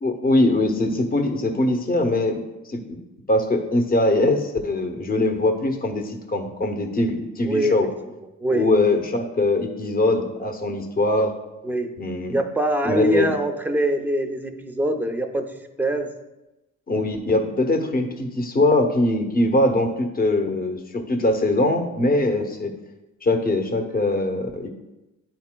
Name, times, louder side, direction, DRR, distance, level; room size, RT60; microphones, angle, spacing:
voice 1, 0.0-2.4 2.6-3.0 3.3-7.9 8.5-11.3 12.0-12.4 12.8-13.3 16.9-22.7 23.2-24.7, left 2 dB, 30° left, 5 dB, 0.9 m, -22 dB
voice 2, 12.3-15.5 15.8-16.1, right 1 dB, 5° right, 5 dB, 0.6 m, -23 dB
10.0 x 4.2 x 2.2 m, 1.0 s
cardioid pair, 90°, 30 cm